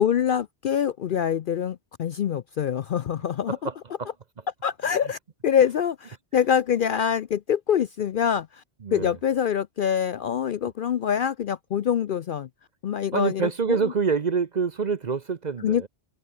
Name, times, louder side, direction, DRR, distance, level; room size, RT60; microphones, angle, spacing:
voice 1, 0.0-3.7 4.6-8.6 8.9-12.5 12.8-13.5 15.6-15.9, left 8 dB, 60° left, 0.6 m, -25 dB
voice 2, 3.5-4.1 8.8-9.2 13.1-15.9, right 5 dB, 45° right, 0.8 m, -26 dB
omnidirectional pair, 1.2 m